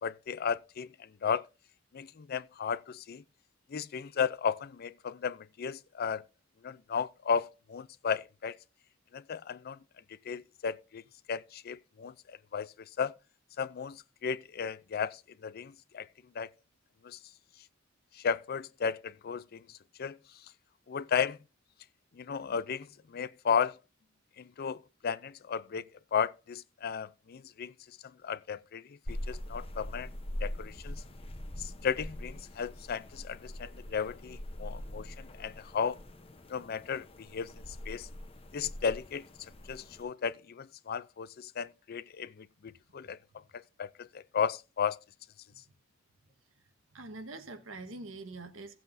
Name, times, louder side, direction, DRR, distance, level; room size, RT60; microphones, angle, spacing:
voice 1, 0.0-1.5 1.9-3.2 3.7-6.2 6.6-8.6 9.1-9.8 10.3-11.0 11.3-13.1 13.6-16.1 16.3-16.5 17.0-17.2 18.1-20.2 20.9-21.4 22.1-23.8 24.4-25.8 26.1-27.7 28.2-30.1 30.4-31.0 31.6-36.0 36.5-37.5 37.9-38.1 38.5-39.2 39.7-43.2 43.5-45.0, left 6 dB, 50° left, 0.4 m, -34 dB
sound 1, 29.1-40.0, left 1 dB, 30° left, 0.8 m, -43 dB
voice 2, 46.9-48.8, right 2 dB, 85° right, 1.5 m, -45 dB
16.5 x 7.7 x 2.6 m
head